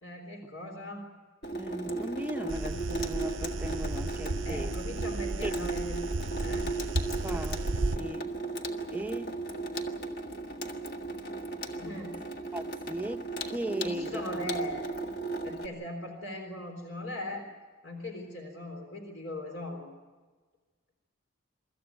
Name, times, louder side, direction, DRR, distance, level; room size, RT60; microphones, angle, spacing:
voice 1, 0.0-1.0 4.5-6.0 6.4-6.7 11.8-12.2 13.8-14.9 15.4-17.5 17.8-19.9, left 1 dB, 75° left, 3.7 m, -39 dB
Water tap faucet / Sink (filling or washing), 1.4-15.7, right 2 dB, 50° left, 1.6 m, -36 dB
voice 2, 1.5-4.7 5.4-5.5 7.2-7.7 7.9-8.4 8.9-9.4 12.5-14.2, right 1 dB, 10° right, 0.7 m, -37 dB
sound 1, 2.5-8.0, right 2 dB, 75° right, 0.7 m, -34 dB
24.5 x 14.0 x 9.3 m
head